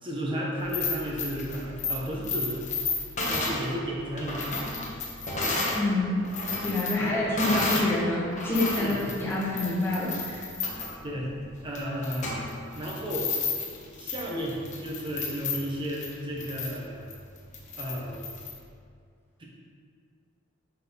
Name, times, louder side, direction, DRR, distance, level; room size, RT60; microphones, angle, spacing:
voice 1, 0.0-2.7 3.3-4.4 7.0-7.6 8.8-9.1 11.0-11.3 11.6-12.4 12.8-13.3 13.8-17.1 17.7-18.3 19.4-19.5, equal, 25° right, -3 dB, 1.2 m, -33 dB
sound 1, 0.6-5.8 6.2-7.9 8.3-18.5, left 3 dB, 35° left, 1.1 m, -32 dB
voice 2, 5.7-6.2 6.6-10.5, left 2 dB, 10° left, -7 dB, 1.5 m, -27 dB
6.7 x 5.7 x 4.1 m, 2.2 s
head